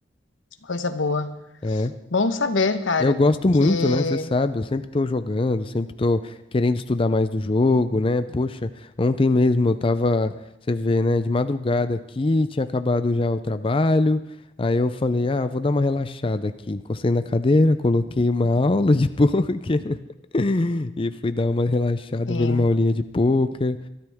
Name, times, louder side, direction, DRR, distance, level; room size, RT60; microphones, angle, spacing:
voice 1, 0.6-1.4 1.7-1.8 2.1-3.2 3.6-4.3 22.3-22.7, left 3 dB, 90° left, 10 dB, 1.1 m, -25 dB
voice 2, 1.6-1.9 3.0-8.7 9.0-10.3 10.7-14.2 14.6-20.0 20.3-23.8, left 2 dB, 30° left, 11 dB, 0.5 m, -22 dB
22.0 x 13.0 x 3.6 m, 0.86 s
head